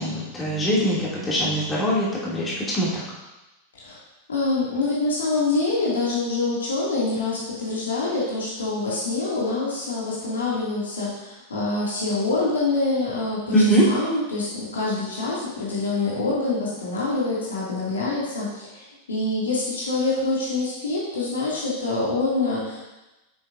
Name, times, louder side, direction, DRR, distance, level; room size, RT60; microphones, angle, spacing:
voice 1, 0.0-3.0 13.5-13.9, right 1 dB, 15° left, -7 dB, 2.6 m, -22 dB
voice 2, 4.3-22.8, left 3 dB, 70° left, -6 dB, 2.4 m, -25 dB
9.6 x 7.0 x 2.6 m, 1.0 s
figure-of-eight pair, 90°, 0 cm